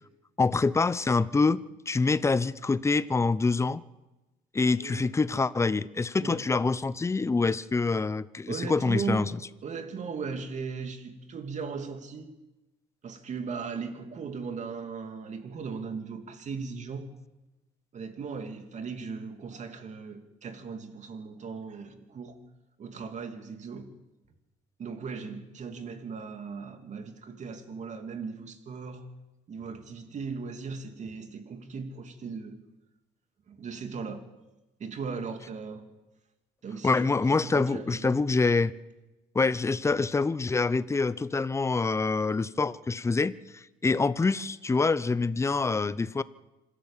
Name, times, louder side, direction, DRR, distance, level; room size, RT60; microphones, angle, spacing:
voice 1, 0.4-3.8 4.5-9.3 36.8-38.7 39.3-46.2, left 4 dB, 15° left, 17 dB, 0.7 m, -26 dB
voice 2, 4.8-5.1 6.2-6.4 8.5-9.3 9.6-12.3 13.0-17.1 17.9-22.4 22.8-23.9 24.8-29.1 29.5-32.6 33.5-34.2 34.8-35.9 36.6-38.2, right 5 dB, 45° right, 7 dB, 2.8 m, -38 dB
26.0 x 14.0 x 7.4 m, 1.0 s
cardioid pair, 110°, 17 cm